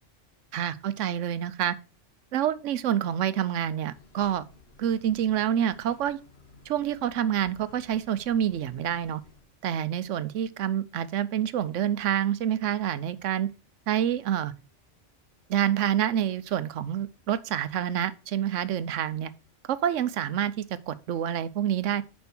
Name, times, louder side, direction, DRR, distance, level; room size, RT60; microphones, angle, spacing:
voice 1, 0.5-1.8 2.3-4.4 4.8-6.2 6.7-9.2 9.6-13.5 13.9-14.5 15.5-19.3 19.7-22.0, right 10 dB, 80° right, 1.0 m, -27 dB
Breathing, 3.8-9.5, left 4 dB, 55° left, 1.5 m, -54 dB
7.0 x 5.3 x 5.9 m
omnidirectional pair, 1.3 m